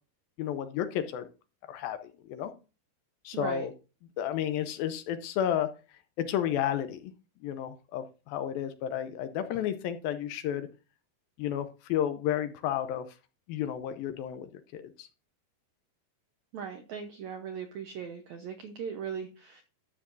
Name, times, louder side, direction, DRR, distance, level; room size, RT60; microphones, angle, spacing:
voice 1, 0.4-1.3 1.7-2.5 3.3-3.7 4.2-5.7 6.2-7.1 7.4-10.7 11.4-13.1 13.5-15.1, left 10 dB, 80° left, 10 dB, 2.3 m, -32 dB
voice 2, 3.3-3.7 16.5-19.6, right 7 dB, 75° right, 5 dB, 1.6 m, -39 dB
12.5 x 8.1 x 2.6 m, 0.32 s
omnidirectional pair, 4.6 m